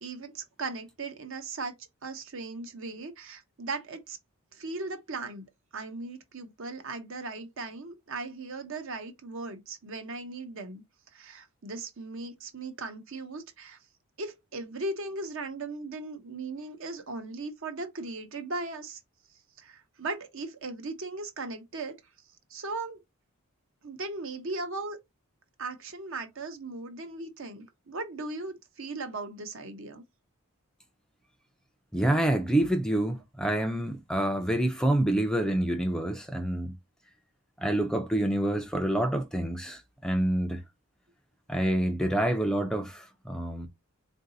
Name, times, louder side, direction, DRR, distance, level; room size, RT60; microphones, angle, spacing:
voice 1, 0.0-4.2 4.5-5.5 5.7-10.8 11.1-13.8 14.2-19.0 19.6-22.0 22.5-23.0 23.8-25.0 25.6-30.0, right 3 dB, 60° right, 0.9 m, -38 dB
voice 2, 31.9-36.7 37.6-40.6 41.5-43.7, right 1 dB, 5° left, 0.4 m, -27 dB
3.9 x 2.6 x 3.8 m
head